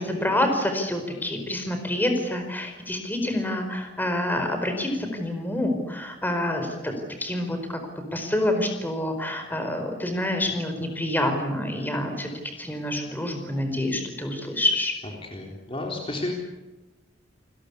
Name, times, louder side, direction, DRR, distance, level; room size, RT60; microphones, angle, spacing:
voice 1, 0.0-6.9 7.2-7.8 8.1-12.3 12.6-14.9, left 1 dB, 10° left, 5 dB, 4.7 m, -27 dB
voice 2, 15.2-16.4, left 2 dB, 30° left, 1 dB, 3.8 m, -32 dB
28.5 x 21.0 x 8.5 m, 1.1 s
head